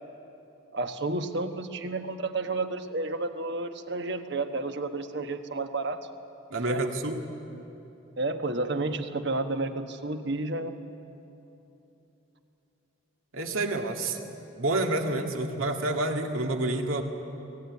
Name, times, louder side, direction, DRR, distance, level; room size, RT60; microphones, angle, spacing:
voice 1, 0.7-6.0 6.5-6.8 8.2-10.8, right 2 dB, 55° right, 7 dB, 1.2 m, -31 dB
voice 2, 6.5-7.2 13.3-14.2 14.6-17.0, right 2 dB, 80° right, 3 dB, 2.0 m, -28 dB
23.5 x 18.0 x 9.6 m, 3.0 s
head